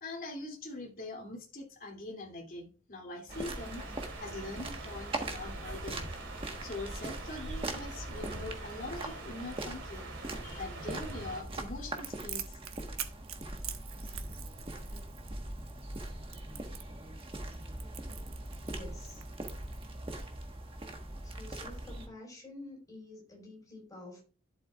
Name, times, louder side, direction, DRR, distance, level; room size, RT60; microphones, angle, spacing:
voice 1, 0.0-6.1 6.6-10.1 10.4-12.6, left 2 dB, 40° left, 1 dB, 2.8 m, -43 dB
sound 1, 3.3-22.1, right 1 dB, 25° right, 1.4 m, -41 dB
sound 2, 3.3-11.4, right 2 dB, 55° right, 2.8 m, -44 dB
Crackle, 12.0-20.2, right 11 dB, 80° right, 1.1 m, -45 dB
voice 2, 18.6-19.2 21.2-24.2, left 2 dB, 15° left, -1 dB, 5.0 m, -49 dB
11.5 x 7.6 x 2.4 m, 0.36 s
head